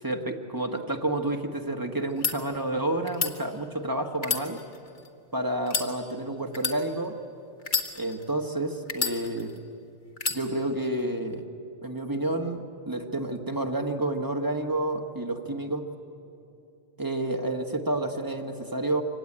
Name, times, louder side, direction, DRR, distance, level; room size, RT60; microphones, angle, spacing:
voice 1, 0.0-4.6 5.3-7.2 7.9-9.5 10.3-11.4 11.8-15.9 17.0-19.0, right 1 dB, 20° right, 3 dB, 1.2 m, -30 dB
sound 1, 2.0-2.3 3.1-3.3 4.2-5.1 5.6-5.9 6.5-6.8 7.6-8.3 8.9-9.6 10.2-10.4, left 4 dB, 45° left, 1.5 m, -29 dB
24.5 x 16.5 x 9.8 m, 2.7 s
omnidirectional pair, 1.2 m